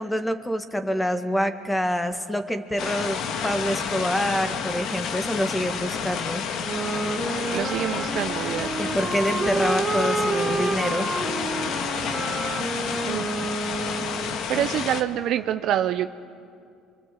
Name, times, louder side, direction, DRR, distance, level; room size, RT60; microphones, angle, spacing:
voice 1, 0.0-6.4 8.8-11.2, equal, 5° left, 8 dB, 1.8 m, -26 dB
sound 1, 2.8-15.0, left 7 dB, 65° left, 1.6 m, -30 dB
sound 2, 6.6-14.5, right 3 dB, 25° right, 2.0 m, -29 dB
voice 2, 7.5-8.7 13.0-13.2 14.5-16.1, right 11 dB, 65° right, 9 dB, 0.6 m, -26 dB
24.5 x 24.5 x 7.9 m, 2.4 s
supercardioid pair, 85°, 0 cm